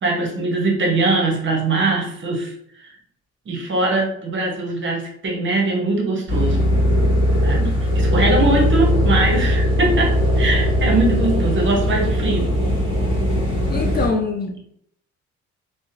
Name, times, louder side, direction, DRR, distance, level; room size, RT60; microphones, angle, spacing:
voice 1, 0.0-3.0 3.5-6.7 7.4-12.5, right 2 dB, 40° right, 0 dB, 0.8 m, -22 dB
sound 1, 6.3-14.1, equal, 15° right, 1.2 m, -19 dB
voice 2, 13.7-14.6, left 4 dB, 35° left, 1 dB, 0.4 m, -23 dB
2.7 x 2.0 x 2.6 m, 0.69 s
cardioid pair, 90°, 30 cm